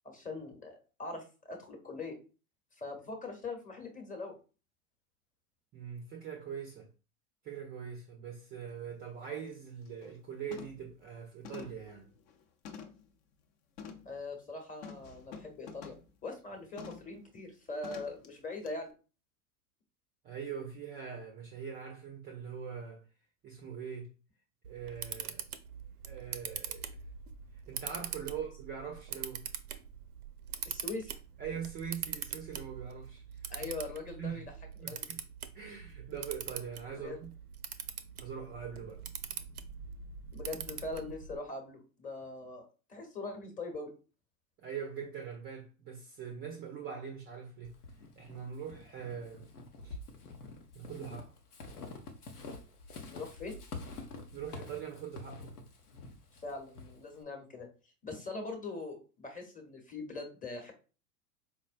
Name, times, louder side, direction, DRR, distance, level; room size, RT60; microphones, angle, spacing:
voice 1, 0.0-2.2 2.8-4.3 14.0-15.9 16.2-18.9 28.3-28.4 30.6-31.1 33.5-34.4 34.9-35.1 37.0-37.2 40.3-43.9 53.1-53.6 56.4-57.7 58.0-60.7, left 3 dB, 15° left, 0.9 m, -42 dB
voice 2, 5.7-6.9 7.4-12.1 20.2-23.0 23.4-24.1 24.7-25.4 26.1-26.9 27.7-29.5 31.4-33.2 33.6-33.7 34.2-34.5 34.8-35.2 35.5-37.4 38.2-39.0 44.6-47.7 48.2-49.5 49.8-50.0 50.7-51.3 54.3-55.6, right 7 dB, 20° right, 0.4 m, -42 dB
sound 1, 8.7-8.8 9.2-9.5 9.9-10.2 10.5-10.9 11.4-13.1 13.8-14.1 14.8-16.1 16.8-17.1 17.8-18.3 18.6-18.7, left 6 dB, 45° left, 0.6 m, -48 dB
Camera, 24.6-41.4, right 8 dB, 80° right, 0.5 m, -43 dB
Walk footsteps / Squeak, 47.6-57.2, left 3 dB, 80° left, 0.8 m, -47 dB
4.4 x 2.1 x 2.5 m
hypercardioid pair, 90°, 45 cm